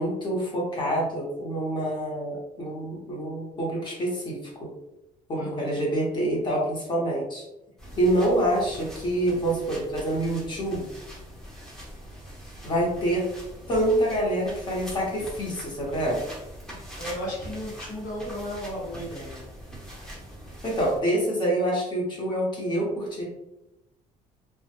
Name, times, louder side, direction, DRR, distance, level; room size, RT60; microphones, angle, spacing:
voice 1, 0.0-4.7 5.3-7.4 8.0-10.9 12.6-13.2 13.7-16.2 20.6-23.3, right 1 dB, 35° left, -3 dB, 0.8 m, -26 dB
voice 2, 5.3-5.8 17.0-19.4, equal, 85° left, -5 dB, 1.0 m, -35 dB
sound 1, 7.8-21.0, equal, 5° left, 0.7 m, -42 dB
2.1 x 2.1 x 2.8 m, 0.90 s
cardioid pair, 140°, 14 cm